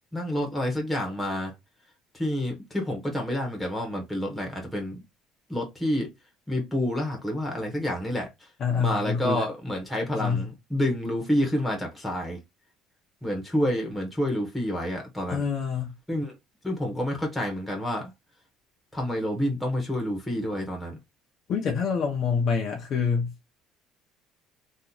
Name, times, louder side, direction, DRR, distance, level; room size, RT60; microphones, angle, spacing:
voice 1, 0.1-1.5 2.1-5.0 5.5-6.1 6.5-8.5 8.8-12.4 13.2-15.4 16.1-16.3 16.6-18.1 18.9-21.0, left 1 dB, 5° left, 1.1 m, -28 dB
voice 2, 8.6-9.5 10.2-10.5 15.3-15.9 21.5-23.3, left 6 dB, 35° left, 0.7 m, -26 dB
2.9 x 2.4 x 3.9 m
cardioid pair, 175°, 0 cm